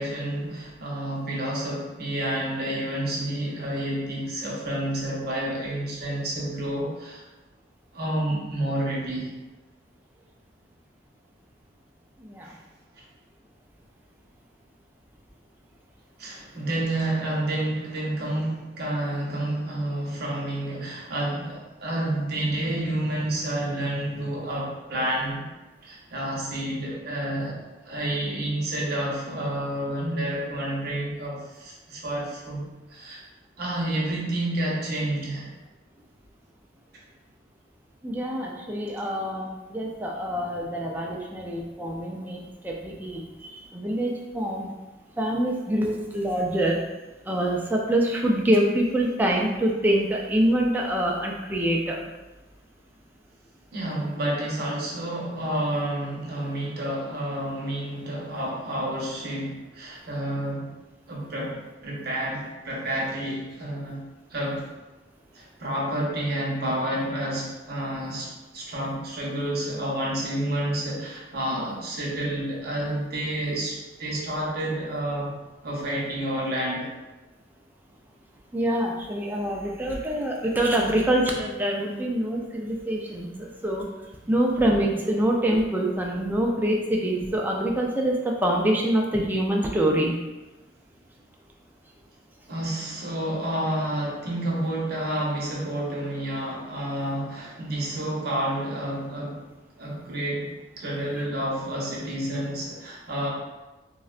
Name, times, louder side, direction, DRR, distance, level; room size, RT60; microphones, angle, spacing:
voice 1, 0.0-7.2 7.9-9.4 12.4-12.5 16.2-25.4 25.8-32.6 32.9-33.2 33.6-35.5 53.7-60.7 61.1-64.0 64.3-64.7 65.3-75.3 75.6-76.9 92.5-99.4 99.8-100.5 100.8-103.3, right 1 dB, 60° right, -3 dB, 0.8 m, -29 dB
voice 2, 12.2-12.6 38.0-44.7 45.2-46.8 47.3-52.0 78.5-83.9 84.3-90.2 101.2-101.3, right 1 dB, 10° right, -1 dB, 0.3 m, -25 dB
3.7 x 2.1 x 2.4 m, 1.1 s
head